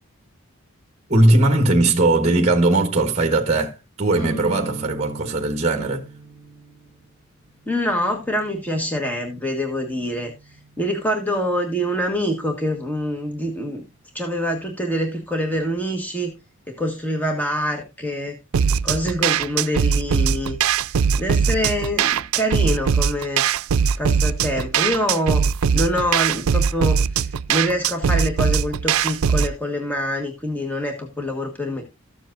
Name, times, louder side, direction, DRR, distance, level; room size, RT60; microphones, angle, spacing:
voice 1, 1.1-6.1, right 2 dB, 30° right, 1.2 m, -19 dB
sound 1, 4.1-11.8, right 2 dB, 65° left, 2.6 m, -40 dB
voice 2, 7.7-13.8 14.1-16.3 16.8-18.4 18.8-20.6 20.9-23.4 24.0-25.4 25.7-31.8, equal, 5° left, 1.4 m, -25 dB
sound 2, 18.5-29.5, right 7 dB, 75° right, 0.4 m, -20 dB
14.0 x 7.5 x 2.5 m
head